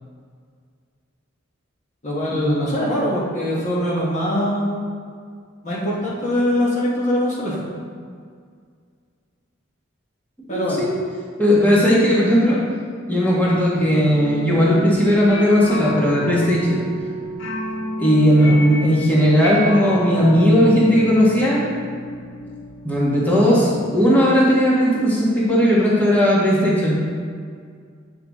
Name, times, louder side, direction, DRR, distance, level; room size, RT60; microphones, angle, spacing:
voice 1, 2.0-4.8 5.6-7.8 10.5-10.8 18.4-18.6, left 1 dB, 40° left, -5 dB, 1.3 m, -22 dB
voice 2, 10.5-11.0 11.4-12.6 13.1-16.8 18.0-21.7 22.8-27.0, equal, 10° left, -7 dB, 1.5 m, -17 dB
sound 1, 13.4-23.2, equal, 70° left, 0.9 m, -31 dB
8.6 x 5.8 x 3.6 m, 2.1 s
head